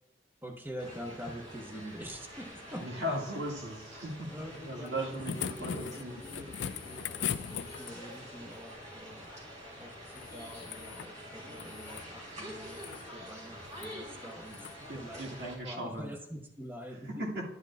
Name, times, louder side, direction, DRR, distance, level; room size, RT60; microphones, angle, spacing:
voice 1, 0.4-3.0 4.3-9.3 9.8-14.7 14.9-17.3, equal, 10° right, 4 dB, 0.9 m, -45 dB
sound 1, 0.8-15.6, equal, 40° right, 3.4 m, -47 dB
voice 2, 2.7-4.3 4.6-6.2 14.9-16.1 17.2-17.4, equal, 70° right, 0 dB, 2.0 m, -37 dB
sound 2, 4.9-8.2 10.1-11.1 11.5-12.1 12.6-13.0 13.7-13.9 14.5-14.8 16.1-16.2, left 8 dB, 70° left, 0.4 m, -40 dB
11.0 x 10.0 x 2.4 m, 0.79 s
head